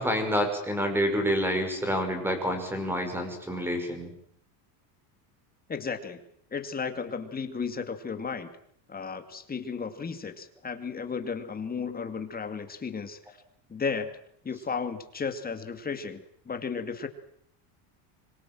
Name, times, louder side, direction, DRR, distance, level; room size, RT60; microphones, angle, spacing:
voice 1, 0.0-4.1, equal, 5° right, 7 dB, 5.6 m, -28 dB
voice 2, 5.7-6.2 6.5-8.5 8.9-13.4 13.7-14.1 14.4-17.1, left 5 dB, 20° left, 8 dB, 2.3 m, -34 dB
25.5 x 22.5 x 7.7 m, 0.67 s
cardioid pair, 150°, 50 cm